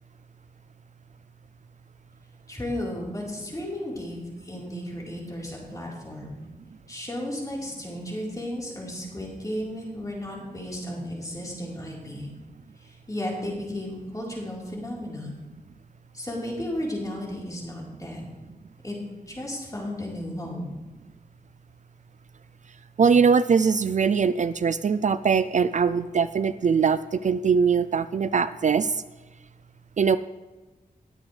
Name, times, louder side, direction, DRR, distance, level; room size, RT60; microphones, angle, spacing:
voice 1, 2.5-6.5 6.9-12.3 12.8-15.3 16.1-18.3 18.8-19.0 19.3-20.8, left 1 dB, 25° left, -4 dB, 4.0 m, -34 dB
voice 2, 23.0-28.9 30.0-30.2, right 6 dB, 55° right, 14 dB, 0.4 m, -21 dB
21.0 x 7.9 x 3.3 m, 1.2 s
wide cardioid pair, 95°, 15 cm